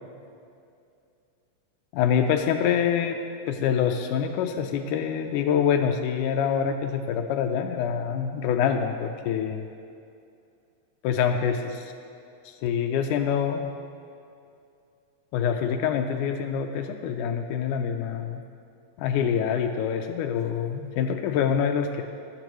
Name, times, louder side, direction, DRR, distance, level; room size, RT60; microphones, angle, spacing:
voice 1, 1.9-3.2 3.5-9.7 11.0-11.9 12.6-13.7 15.3-18.4 19.0-22.0, left 7 dB, 90° left, 5 dB, 2.1 m, -25 dB
17.5 x 8.8 x 3.1 m, 2.5 s
omnidirectional pair, 3.5 m